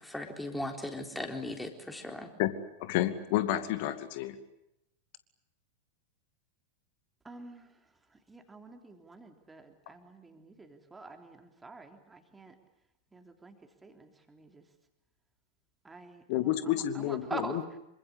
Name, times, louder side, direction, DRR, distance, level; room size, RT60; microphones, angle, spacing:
voice 1, 0.0-2.3, left 1 dB, 5° left, 4 dB, 4.0 m, -38 dB
voice 2, 2.4-4.4 16.3-17.6, left 13 dB, 50° left, 11 dB, 2.3 m, -30 dB
voice 3, 7.2-7.7 8.1-12.6 13.1-13.6 13.8-14.6 15.8-17.8, right 3 dB, 10° right, 5 dB, 3.3 m, -46 dB
27.0 x 25.0 x 8.3 m, 0.85 s
figure-of-eight pair, 90°, 0 cm